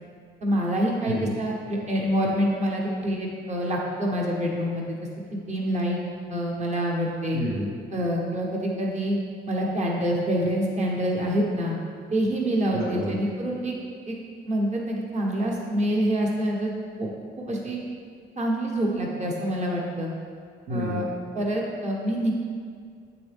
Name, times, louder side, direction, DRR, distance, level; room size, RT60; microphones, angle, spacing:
voice 1, 0.4-5.0 5.3-6.0 6.3-7.4 7.9-9.2 9.5-11.8 12.1-13.7 14.1-14.2 14.5-17.1 17.4-17.8 18.4-20.1 20.7-21.1 21.3-22.3, equal, 35° right, -2 dB, 1.2 m, -26 dB
voice 2, 7.3-7.7 12.7-13.2 20.7-21.1, equal, 85° right, -8 dB, 1.3 m, -29 dB
7.9 x 4.0 x 3.5 m, 2.1 s
cardioid pair, 90°, 20 cm